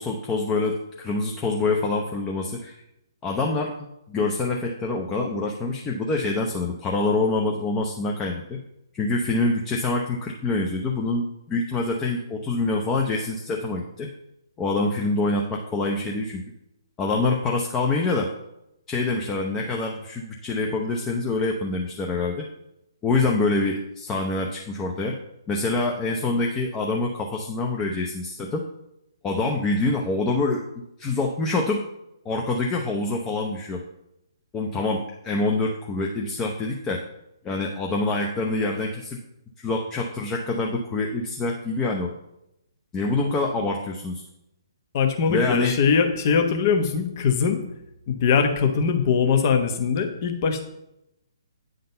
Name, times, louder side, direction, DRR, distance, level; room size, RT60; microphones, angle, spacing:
voice 1, 0.0-2.8 3.2-8.6 8.9-14.1 14.6-16.4 17.0-18.3 18.9-22.5 23.0-25.2 25.5-28.6 29.2-30.6 31.0-31.8 32.2-33.8 34.5-37.0 37.4-39.2 39.6-42.1 42.9-44.2 45.3-45.8, left 3 dB, 15° left, 0 dB, 0.7 m, -26 dB
voice 2, 44.9-47.6 48.1-50.6, left 6 dB, 40° left, 6 dB, 1.0 m, -21 dB
9.3 x 3.9 x 5.4 m, 0.84 s
figure-of-eight pair, 135°, 2 cm